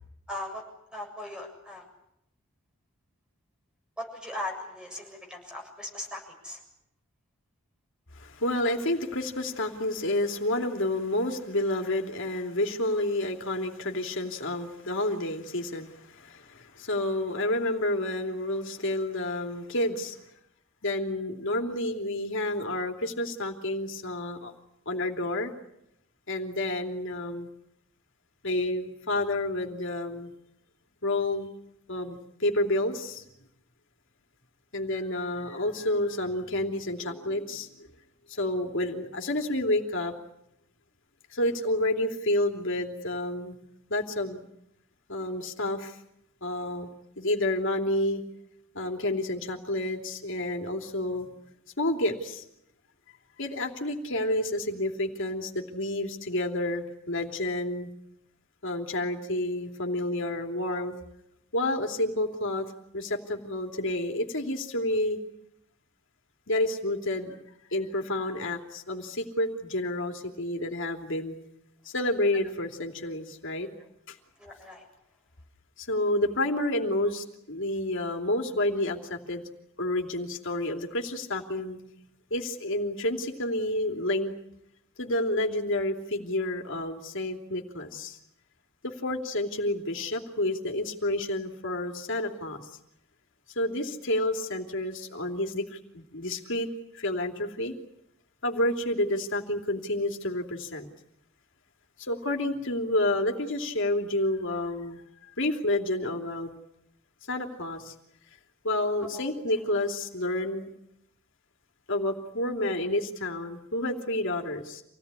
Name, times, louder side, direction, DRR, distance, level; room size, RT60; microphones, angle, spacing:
voice 1, 0.3-0.6 0.9-1.8 4.0-6.6 73.8-73.9 74.4-74.9 109.1-109.3, left 1 dB, 5° right, 2 dB, 7.3 m, -38 dB
voice 2, 8.1-20.2 20.8-24.5 24.9-25.5 26.3-27.5 28.4-30.3 31.0-31.5 31.9-33.2 34.7-37.9 38.3-40.1 41.3-43.5 43.9-44.4 45.1-46.0 46.4-46.9 47.2-48.2 48.7-51.3 51.8-52.4 53.4-57.9 58.6-60.9 61.5-62.7 62.9-65.2 66.5-67.4 67.7-71.3 71.8-73.7 74.1-74.2 75.8-79.4 79.8-81.8 82.3-84.3 85.0-88.2 88.8-92.6 93.5-96.7 96.9-97.7 98.4-100.9 102.0-105.0 105.4-106.5 107.3-107.9 108.6-110.7 111.9-114.8, left 1 dB, 65° left, 3 dB, 3.1 m, -29 dB
27.5 x 18.0 x 9.9 m, 0.80 s
head